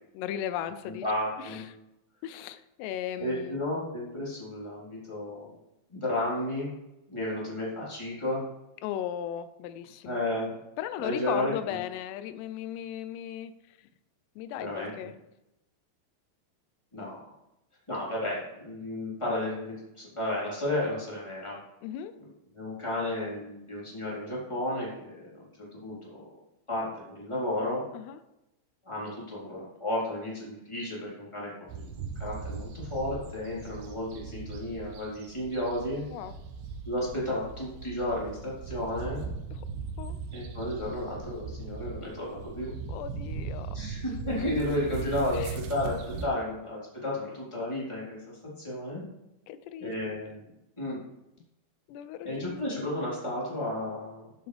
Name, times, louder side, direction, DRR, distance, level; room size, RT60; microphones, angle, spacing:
voice 1, 0.1-1.1 1.4-1.8 2.2-3.7 8.8-10.2 10.8-13.8 14.4-15.2 21.8-22.2 27.9-28.2 36.1-36.4 39.5-39.6 40.0-40.2 42.9-43.8 45.3-45.6 49.5-49.9 51.9-52.6 54.4-54.5, left 11 dB, 80° left, 11 dB, 2.6 m, -36 dB
voice 2, 0.8-1.6 3.2-5.5 5.9-6.7 7.1-8.5 10.0-10.5 11.0-11.8 14.6-14.9 16.9-17.3 17.9-21.6 22.5-25.3 25.6-26.2 26.7-27.8 28.8-31.9 32.2-36.0 36.8-39.2 40.3-42.7 43.7-49.0 49.8-50.5 50.8-51.0 52.2-54.3, left 1 dB, 5° left, -7 dB, 3.4 m, -33 dB
sound 1, 31.7-46.3, right 5 dB, 80° right, 3.3 m, -39 dB
14.0 x 8.0 x 3.4 m, 0.91 s
omnidirectional pair, 5.2 m